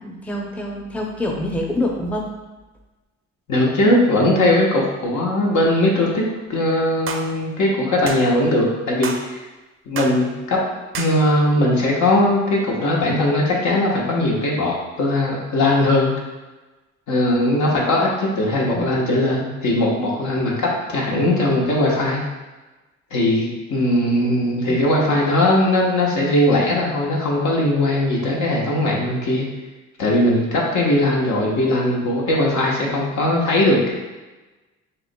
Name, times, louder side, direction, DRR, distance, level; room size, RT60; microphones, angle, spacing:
voice 1, 0.0-2.3 18.6-19.0 24.7-24.9, left 1 dB, 5° left, 0 dB, 0.6 m, -26 dB
voice 2, 3.5-6.2 6.5-9.4 9.9-10.6 11.0-16.1 17.1-22.2 23.1-29.4 30.0-33.9, left 1 dB, 75° left, -3 dB, 1.1 m, -19 dB
sound 1, 7.1-7.3 8.1-8.2 9.0-9.3 10.0-10.2 10.9-11.2, right 5 dB, 45° right, 0.5 m, -29 dB
5.7 x 3.0 x 2.2 m, 1.2 s
cardioid pair, 90°, 30 cm